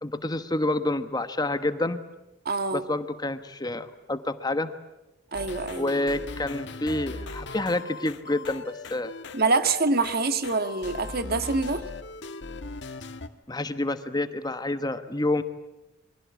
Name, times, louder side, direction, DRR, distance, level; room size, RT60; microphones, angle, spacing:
voice 1, 0.0-2.0 2.7-4.7 5.7-8.6 8.9-9.1 13.5-15.4, left 2 dB, 20° left, 9 dB, 1.2 m, -28 dB
voice 2, 2.5-2.8 5.3-5.9 9.3-11.8, right 3 dB, 50° right, 10 dB, 1.7 m, -25 dB
sound 1, 5.3-13.3, left 3 dB, 60° left, 1.7 m, -39 dB
29.0 x 24.0 x 8.3 m, 0.96 s
head